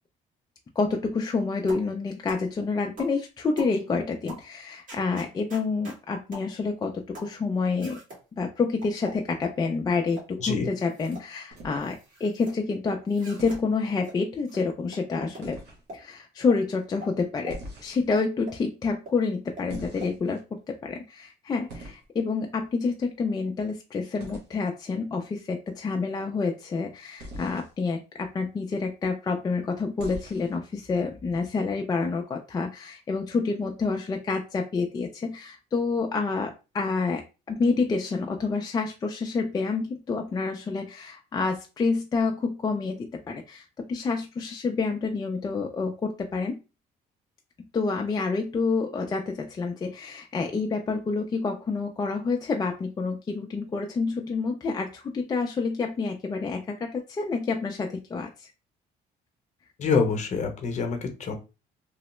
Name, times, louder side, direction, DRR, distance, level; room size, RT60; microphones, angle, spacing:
voice 1, 0.8-8.0 8.3-15.6 15.9-46.6 47.7-58.5, left 4 dB, 25° left, 2 dB, 0.3 m, -28 dB
sound 1, 1.7-1.9 2.3-2.5 3.0-3.2 3.6-3.8 4.3-4.5 4.9-6.0 6.3-6.5 7.1-7.4 7.8-8.2 8.8-9.6 10.1-10.3 10.8-11.3 11.6-12.5 13.1-13.6 14.0-14.2 14.5-14.6 14.9-15.0 15.3-15.5 15.9-16.0 16.5-16.6 17.0-17.1 17.5-17.6 18.1-18.6 19.1-19.2 19.6-19.7 20.0-20.1, equal, 50° right, 1.7 m, -43 dB
voice 2, 10.4-10.7 59.8-61.4, left 5 dB, 45° left, 4 dB, 0.8 m, -26 dB
sound 2, 11.5-12.2 13.4-13.7 15.4-15.8 17.5-18.2 19.7-20.4 21.7-22.0 24.2-24.5 27.2-27.7 30.0-30.6, right 1 dB, 75° right, 1.1 m, -42 dB
3.0 x 2.0 x 3.0 m, 0.31 s
cardioid pair, 110°, 17 cm